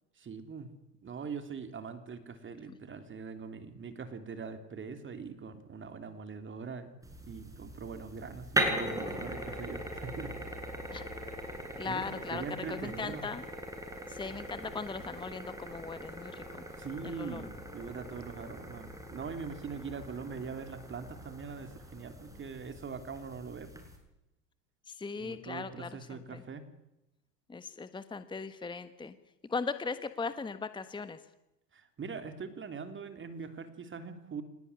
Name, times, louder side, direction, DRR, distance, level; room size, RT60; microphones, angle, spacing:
voice 1, 0.2-0.7 1.0-7.0 7.2-10.4 11.8-12.0 12.3-13.2 16.8-23.8 25.2-26.6 31.7-34.4, right 5 dB, 25° right, 8 dB, 3.1 m, -42 dB
sound 1, 7.0-24.0, right 1 dB, 5° right, 7.1 m, -40 dB
voice 2, 11.8-13.4 14.1-16.7 17.0-17.5 24.9-26.4 27.5-29.1 29.5-31.2, left 4 dB, 10° left, 12 dB, 1.3 m, -39 dB
25.5 x 20.0 x 9.8 m, 0.90 s
hypercardioid pair, 95°, 49 cm